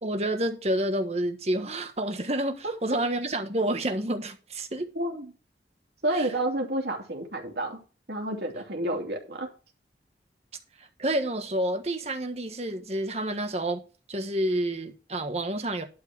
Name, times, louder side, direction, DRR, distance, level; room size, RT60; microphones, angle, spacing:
voice 1, 0.0-4.9 6.1-6.3 10.8-13.8 14.1-15.9, right 1 dB, 35° right, 1.4 m, -29 dB
voice 2, 4.9-5.3 6.0-7.8 8.1-9.5, right 1 dB, 65° right, 2.9 m, -30 dB
12.0 x 4.8 x 6.1 m
head